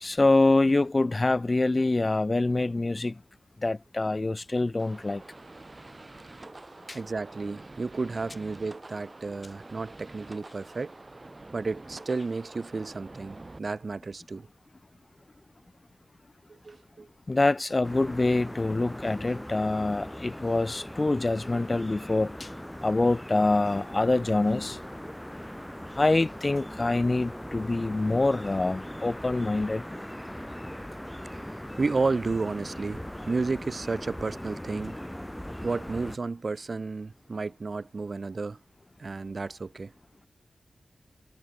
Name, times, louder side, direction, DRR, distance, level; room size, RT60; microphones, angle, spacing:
voice 1, 0.0-3.2 3.6-5.2 6.9-7.0 17.3-22.5 22.8-24.8 26.0-29.8, left 2 dB, 35° left, 0.8 m, -25 dB
sound 1, 4.8-13.6, right 2 dB, 35° right, 4.8 m, -47 dB
voice 2, 6.9-10.9 11.5-14.5 16.5-17.1 31.3-31.4 31.8-34.9 35.6-38.6 39.0-39.9, right 3 dB, 55° right, 0.5 m, -32 dB
sound 2, 17.8-36.2, equal, 5° left, 5.6 m, -40 dB
wide cardioid pair, 65°, 0 cm